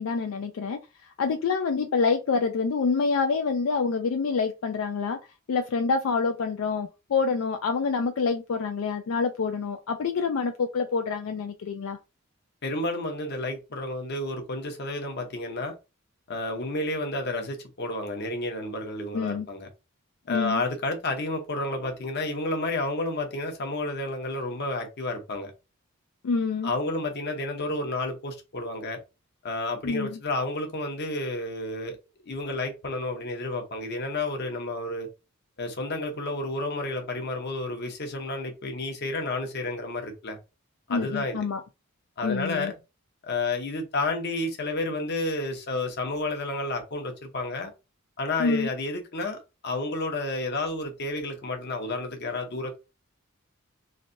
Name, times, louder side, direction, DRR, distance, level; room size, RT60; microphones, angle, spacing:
voice 1, 0.0-5.2 5.5-12.0 19.1-19.5 20.3-20.6 26.2-26.7 29.8-30.2 40.9-41.6 42.2-42.7 48.4-48.7, left 5 dB, 75° left, 0.4 m, -27 dB
voice 2, 12.6-15.7 16.3-19.7 20.3-25.5 26.6-29.0 29.4-32.0 32.2-35.1 35.6-40.4 40.9-41.4 42.2-42.7 43.2-47.7 48.2-52.8, left 2 dB, 55° left, 0.8 m, -31 dB
3.2 x 2.6 x 2.6 m
head